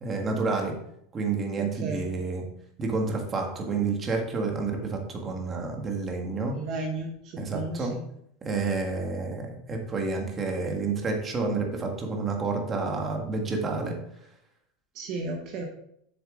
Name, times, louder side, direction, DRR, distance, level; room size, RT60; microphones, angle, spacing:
voice 1, 0.0-0.7 1.1-2.4 2.8-6.6 7.4-7.9 8.4-14.0, right 4 dB, 20° right, 2 dB, 1.6 m, -29 dB
voice 2, 1.6-2.1 6.5-8.0 14.9-15.6, right 3 dB, 45° right, 2 dB, 1.2 m, -34 dB
7.9 x 6.8 x 3.8 m, 0.72 s
supercardioid pair, 150°, 0 cm